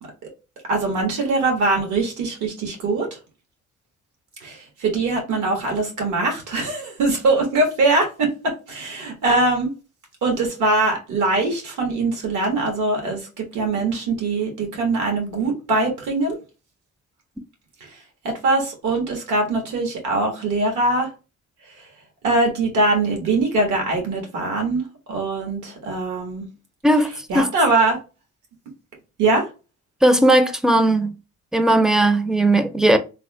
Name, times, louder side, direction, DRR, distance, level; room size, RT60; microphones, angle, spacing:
voice 1, 0.7-3.1 4.4-9.7 10.2-16.4 18.2-21.1 22.2-26.5 27.3-28.0 29.2-29.5, right 2 dB, 80° right, 1.5 m, -22 dB
voice 2, 30.0-31.1 31.5-33.0, right 1 dB, ahead, 0.4 m, -17 dB
3.5 x 2.1 x 3.2 m
cardioid pair, 90°, 30 cm